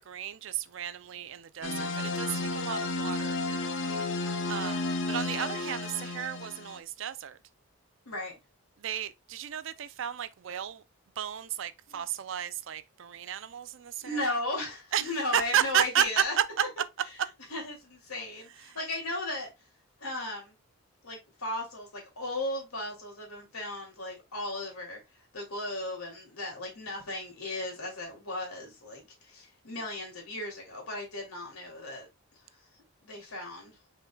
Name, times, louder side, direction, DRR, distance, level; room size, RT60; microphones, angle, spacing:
voice 1, 0.0-3.4 4.0-4.1 4.5-7.4 8.8-10.8 11.2-14.4 14.9-16.2 18.7-18.8, right 9 dB, 60° right, 0.4 m, -33 dB
sound 1, 1.6-6.8, left 2 dB, 60° left, 0.6 m, -32 dB
voice 2, 8.1-8.4 11.9-12.0 14.0-16.3 17.5-19.5 20.0-20.6 21.0-25.0 25.3-32.1 33.0-33.8, left 2 dB, 90° left, 2.5 m, -36 dB
5.2 x 3.9 x 2.2 m
head